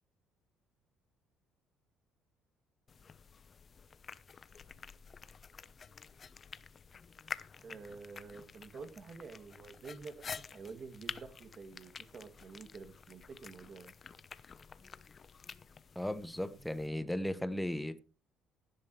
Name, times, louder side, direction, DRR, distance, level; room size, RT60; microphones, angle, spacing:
sound 1, 2.9-16.9, left 6 dB, 40° left, 1.0 m, -49 dB
voice 1, 7.6-10.2 10.5-13.9 16.5-16.8, right 4 dB, 45° right, 2.5 m, -49 dB
voice 2, 15.9-18.0, left 1 dB, 5° left, 1.4 m, -36 dB
17.0 x 11.5 x 3.3 m
supercardioid pair, 85°, 0 cm